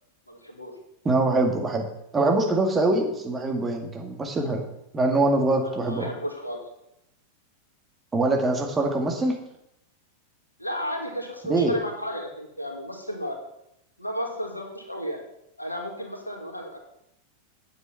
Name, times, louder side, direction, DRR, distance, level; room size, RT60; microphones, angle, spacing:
voice 1, 0.3-0.7 5.7-6.6 10.6-13.4 14.0-15.2 15.6-16.8, equal, 85° left, 2 dB, 2.0 m, -33 dB
voice 2, 1.0-1.9 2.1-4.6 4.9-6.1 8.1-9.4 11.5-11.7, right 2 dB, 15° right, 2 dB, 2.2 m, -23 dB
9.5 x 8.0 x 5.8 m, 0.81 s
figure-of-eight pair, 90°, 0 cm